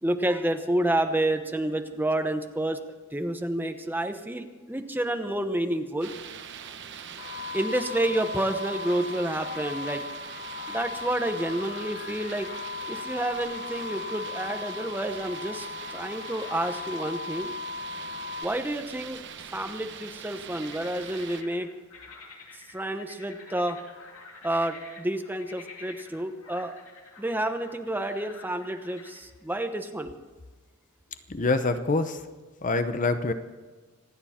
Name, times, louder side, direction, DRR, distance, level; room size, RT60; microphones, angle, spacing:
voice 1, 0.0-2.8 3.1-6.1 7.5-10.0 10.7-12.5 12.9-17.5 18.4-19.2 19.5-21.7 22.5-23.8 24.4-26.7 27.2-30.1, right 1 dB, 10° right, 7 dB, 0.9 m, -29 dB
sound 1, 6.0-21.4, right 8 dB, 60° right, 0.9 m, -42 dB
sound 2, 7.2-18.4, left 5 dB, 55° left, 0.4 m, -38 dB
sound 3, 20.5-29.2, left 4 dB, 75° left, 2.7 m, -49 dB
voice 2, 31.3-32.2 32.6-33.3, left 3 dB, 40° left, 10 dB, 0.8 m, -25 dB
26.5 x 9.7 x 4.4 m, 1.4 s
head